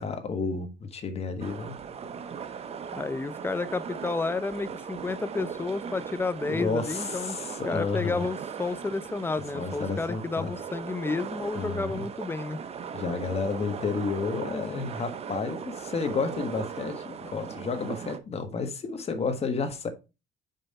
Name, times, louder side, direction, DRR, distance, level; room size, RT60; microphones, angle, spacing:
voice 1, 0.0-1.8 6.5-8.3 9.5-10.5 11.5-12.1 12.9-19.9, left 4 dB, 35° left, 1.4 m, -31 dB
sound 1, 1.4-18.2, right 7 dB, 35° right, 0.7 m, -38 dB
voice 2, 2.9-12.6, left 3 dB, 15° left, 0.5 m, -31 dB
5.6 x 5.1 x 4.1 m
cardioid pair, 110°, 17 cm